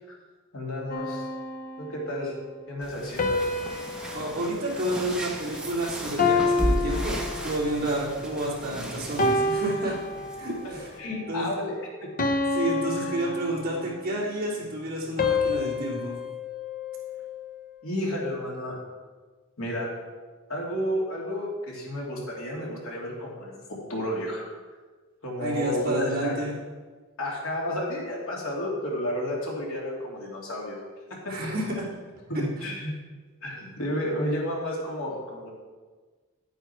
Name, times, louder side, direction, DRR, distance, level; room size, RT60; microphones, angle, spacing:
voice 1, 0.5-1.3 1.8-2.3 2.7-3.4 10.6-12.1 13.0-13.1 17.8-18.8 19.6-19.9 20.5-24.5 25.2-26.5 27.2-30.8 32.6-32.9 33.4-35.5, left 1 dB, 70° left, -3 dB, 3.0 m, -31 dB
sound 1, 0.9-2.2 3.2-5.7 6.2-7.9 8.5-8.7 9.2-10.7 11.2-11.5 12.2-14.1 15.2-17.6, left 3 dB, 40° left, 0.8 m, -29 dB
sound 2, 2.8-11.0, right 1 dB, 5° right, 1.3 m, -35 dB
voice 2, 4.1-9.9 10.4-10.9 11.3-11.4 12.5-16.1 25.4-26.5 31.3-31.8, right 1 dB, 45° right, -5 dB, 3.2 m, -30 dB
10.5 x 9.3 x 4.6 m, 1.4 s
head